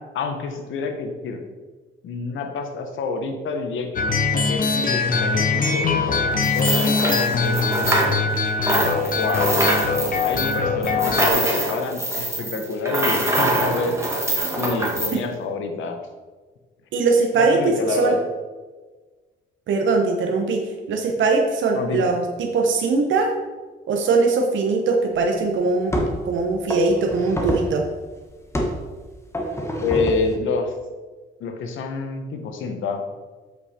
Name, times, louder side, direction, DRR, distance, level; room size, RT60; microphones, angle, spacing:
voice 1, 0.0-1.4 2.0-8.2 9.0-9.6 10.2-14.0 14.6-16.0 17.4-18.2 21.7-22.1 29.8-30.7 31.4-33.0, left 4 dB, 80° left, 5 dB, 1.2 m, -28 dB
sound 1, 4.0-11.3, left 4 dB, 45° left, 0.9 m, -22 dB
sound 2, 6.4-8.4 8.6-15.2, right 1 dB, 15° right, 2.0 m, -24 dB
voice 2, 16.9-18.2 19.7-23.3 23.9-27.8, right 3 dB, 75° right, 2 dB, 1.0 m, -21 dB
sound 3, 25.2-25.3 25.9-26.3 26.7-27.8 28.5-28.9 29.3-30.4, equal, 15° left, 1.3 m, -26 dB
8.1 x 5.4 x 4.3 m, 1.3 s
cardioid pair, 90°, 20 cm